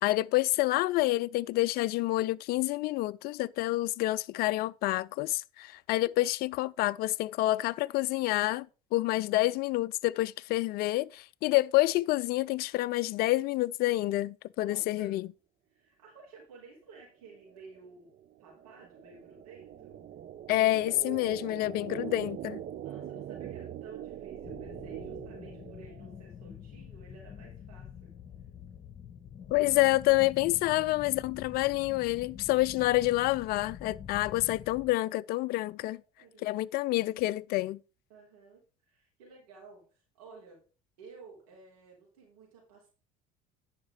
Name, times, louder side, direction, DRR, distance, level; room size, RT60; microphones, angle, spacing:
voice 1, 0.0-8.7 8.9-15.3 20.5-22.6 29.5-36.0 36.4-37.8, left 18 dB, 55° left, 0.4 m, -28 dB
voice 2, 14.6-15.3 15.7-18.1 18.4-20.1 22.8-28.2 30.8-30.9 36.2-36.6 38.1-40.7 41.0-42.9, right 4 dB, 80° right, 3.4 m, -53 dB
sound 1, 17.3-26.2, right 10 dB, 50° right, 0.9 m, -42 dB
sound 2, 24.4-34.9, left 8 dB, 40° left, 1.2 m, -47 dB
10.5 x 5.1 x 4.9 m
hypercardioid pair, 70°, 19 cm